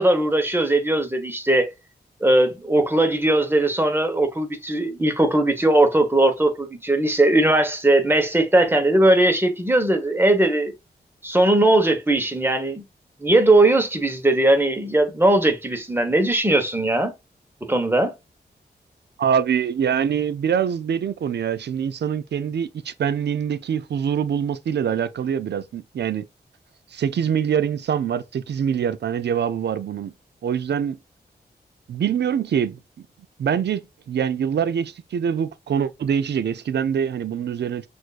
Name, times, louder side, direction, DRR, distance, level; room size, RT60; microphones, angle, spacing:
voice 1, 0.0-1.7 2.2-10.7 11.2-12.8 13.2-17.1 17.7-18.1, right 1 dB, 15° right, 1.1 m, -19 dB
voice 2, 19.2-26.2 26.9-30.1 30.4-31.0 31.9-32.8 33.4-37.9, right 8 dB, 80° right, 0.5 m, -24 dB
6.2 x 2.6 x 2.4 m
wide cardioid pair, 75°, 17 cm